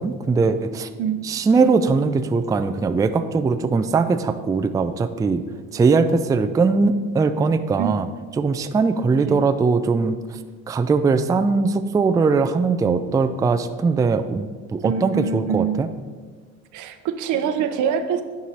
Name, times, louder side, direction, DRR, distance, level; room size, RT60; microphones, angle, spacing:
voice 1, 0.0-0.9 1.2-5.4 5.7-8.1 8.4-10.2 10.7-15.9, right 4 dB, 10° right, 9 dB, 0.3 m, -20 dB
voice 2, 14.8-15.8 16.7-18.2, right 7 dB, 80° right, 9 dB, 0.7 m, -24 dB
9.9 x 4.8 x 4.2 m, 1.5 s
cardioid pair, 100°, 30 cm